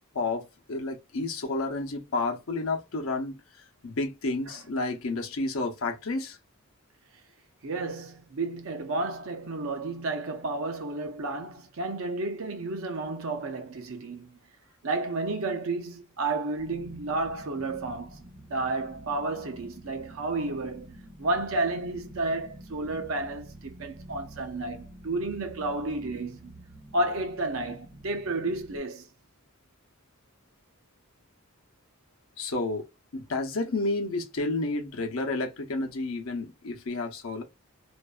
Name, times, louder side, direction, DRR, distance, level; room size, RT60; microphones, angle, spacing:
voice 1, 0.1-3.4 3.8-6.4 32.4-32.9 33.1-37.4, left 2 dB, 70° left, 0.7 m, -30 dB
voice 2, 7.6-14.4 14.8-26.5 26.9-29.1, right 2 dB, 70° right, 0.6 m, -32 dB
sound 1, 16.6-28.8, right 1 dB, 40° right, 1.4 m, -48 dB
2.6 x 2.2 x 2.4 m
head